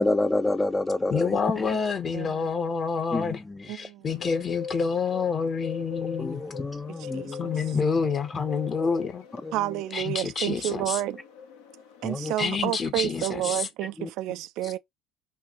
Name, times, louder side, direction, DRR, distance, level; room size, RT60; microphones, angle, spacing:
voice 1, 0.0-1.3 1.7-1.8 3.1-3.4 6.2-7.4 7.7-7.8 9.4-9.5 12.0-12.3 14.0-14.1, left 2 dB, 15° left, 0.4 m, -27 dB
voice 2, 1.1-6.4 7.4-9.3 9.9-11.0 12.4-13.7 14.6-14.8, left 5 dB, 35° left, 0.9 m, -28 dB
voice 3, 2.1-2.5 3.7-4.1 6.9-7.5 9.5-11.2 12.0-14.8, right 14 dB, 60° right, 0.3 m, -30 dB
Bird, 4.1-12.4, left 6 dB, 70° left, 0.8 m, -41 dB
5.7 x 2.5 x 2.9 m
figure-of-eight pair, 60°, 0 cm